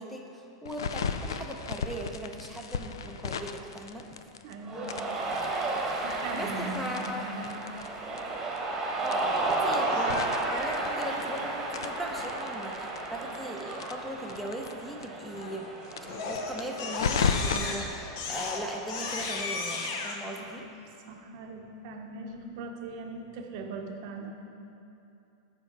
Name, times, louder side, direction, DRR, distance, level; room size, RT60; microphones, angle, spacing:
voice 1, 0.0-4.1 6.3-7.3 9.0-15.7 16.2-20.7, equal, 5° left, 1 dB, 0.6 m, -39 dB
sound 1, 0.7-4.5 4.8-7.9 8.2-8.3 8.5-8.6 9.0-11.4 11.7-14.7 15.0-15.1 15.4-15.5 15.9-17.6, left 6 dB, 90° left, 0.3 m, -34 dB
voice 2, 4.4-4.9 6.0-7.5 20.4-20.6 21.1-24.3, right 3 dB, 60° right, 3 dB, 0.7 m, -40 dB
Cheering, 4.7-19.5, right 2 dB, 20° right, 1.1 m, -33 dB
Crying sobbing, 9.7-10.7 15.4-15.7 16.1-20.2, left 4 dB, 60° left, 0.8 m, -35 dB
6.9 x 4.4 x 5.2 m, 2.7 s
hypercardioid pair, 120°, 2 cm